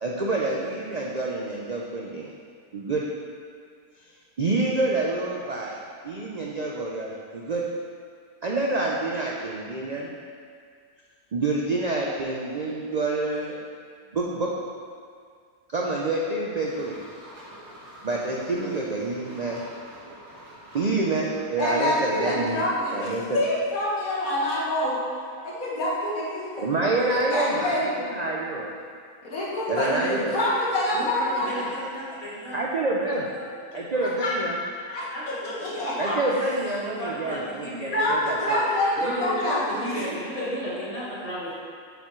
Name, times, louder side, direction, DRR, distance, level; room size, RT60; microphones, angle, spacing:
voice 1, 0.0-2.3 2.7-3.0 4.4-5.8 6.0-7.6 8.4-10.1 11.3-13.6 14.1-14.5 15.7-17.0 18.0-19.6 20.7-22.6 22.9-23.4 26.6-28.7 29.7-30.4 32.5-33.2 33.7-34.6 36.0-38.6, right 2 dB, 75° right, -3 dB, 0.3 m, -27 dB
sound 1, 16.6-22.5, equal, 50° right, 1.8 m, -46 dB
voice 2, 21.6-25.0 25.4-27.8 29.2-31.7 34.2-34.3 34.7-36.2 37.9-40.0 40.4-40.5, left 1 dB, 70° left, -7 dB, 2.0 m, -27 dB
voice 3, 30.9-32.6 33.0-33.4 33.7-33.8 35.1-36.2 36.6-38.1 39.0-41.5, equal, 40° left, -9 dB, 2.2 m, -34 dB
7.4 x 6.9 x 3.1 m, 2.1 s
omnidirectional pair, 1.6 m